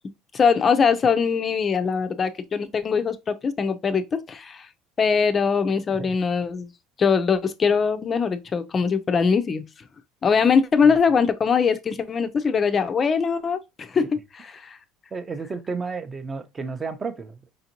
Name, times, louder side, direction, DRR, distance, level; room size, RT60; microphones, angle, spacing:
voice 1, 0.3-4.7 5.0-6.7 7.0-9.6 10.2-14.8, left 6 dB, 30° left, 0.5 m, -22 dB
voice 2, 15.1-17.4, right 4 dB, 20° right, 0.6 m, -32 dB
5.1 x 2.5 x 2.8 m
cardioid pair, 125°, 0 cm